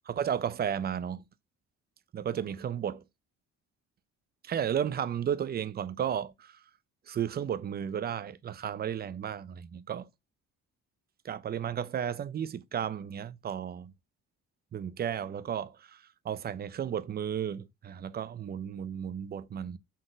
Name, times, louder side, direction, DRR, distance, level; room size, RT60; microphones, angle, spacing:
voice 1, 0.1-1.2 2.1-3.0 4.4-6.6 7.1-10.1 11.2-13.9 14.7-19.8, right 9 dB, 35° right, 0.4 m, -33 dB
4.0 x 2.4 x 3.8 m
cardioid pair, 90°, 30 cm